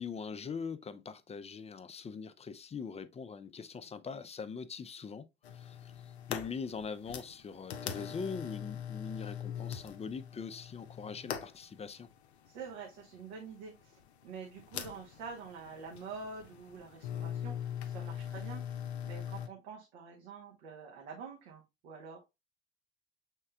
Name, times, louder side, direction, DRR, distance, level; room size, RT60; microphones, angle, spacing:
voice 1, 0.0-5.2 5.5-12.1, left 5 dB, 20° left, 0.5 m, -42 dB
sound 1, 5.4-19.5, left 9 dB, 80° left, 0.6 m, -42 dB
voice 2, 12.5-22.2, right 5 dB, 70° right, 1.1 m, -47 dB
6.4 x 3.6 x 2.2 m
figure-of-eight pair, 55°, 32 cm